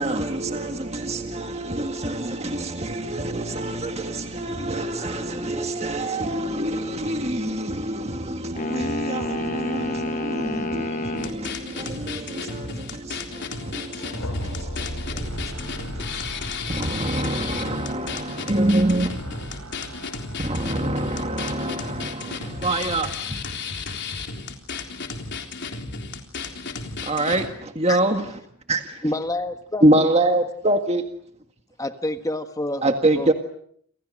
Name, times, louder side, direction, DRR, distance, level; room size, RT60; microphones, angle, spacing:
voice 1, 0.0-19.4 20.4-23.4 27.1-28.3 28.7-29.0 29.8-31.0 32.8-33.3, right 1 dB, 30° right, 1.8 m, -26 dB
sound 1, 8.6-11.4, left 1 dB, 35° left, 1.4 m, -29 dB
sound 2, 11.2-27.5, left 4 dB, 50° left, 3.8 m, -33 dB
sound 3, 13.9-17.9, equal, 85° left, 5.3 m, -35 dB
voice 2, 15.2-17.3 18.9-20.8, right 1 dB, 75° right, 6.1 m, -41 dB
voice 3, 29.0-30.1 31.8-32.9 33.2-33.3, left 1 dB, 15° left, 1.5 m, -28 dB
30.0 x 27.0 x 6.4 m
head